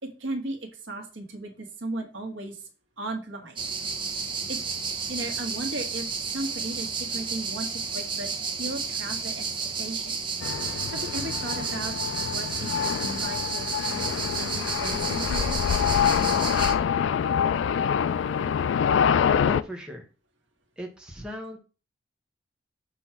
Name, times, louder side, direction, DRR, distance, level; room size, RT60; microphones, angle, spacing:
voice 1, 0.0-2.7 3.0-3.6 4.5-4.7 5.1-8.3 8.6-9.5 9.8-10.2 10.7-11.9 12.2-14.1 14.4-15.6, right 2 dB, 75° right, 4 dB, 1.5 m, -36 dB
sound 1, 3.6-16.8, right 5 dB, 25° right, 0.7 m, -32 dB
sound 2, 10.4-19.6, left 7 dB, 70° left, 0.3 m, -26 dB
voice 2, 19.5-20.1 20.8-21.6, left 1 dB, 5° right, 1 dB, 1.2 m, -37 dB
6.2 x 3.1 x 5.8 m, 0.33 s
head